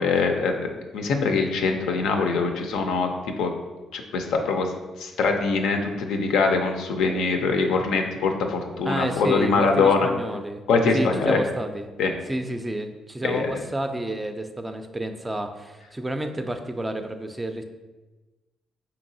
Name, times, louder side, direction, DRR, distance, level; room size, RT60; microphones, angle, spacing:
voice 1, 0.0-3.1 3.4-3.5 3.9-4.7 5.0-10.1 10.7-11.4 12.0-12.1 13.2-13.5, left 4 dB, 85° left, 4 dB, 0.4 m, -23 dB
voice 2, 8.8-10.6 10.9-11.9 12.3-17.6, right 1 dB, 15° right, 7 dB, 0.3 m, -30 dB
4.6 x 2.9 x 2.6 m, 1.2 s
cardioid pair, 90°, 0 cm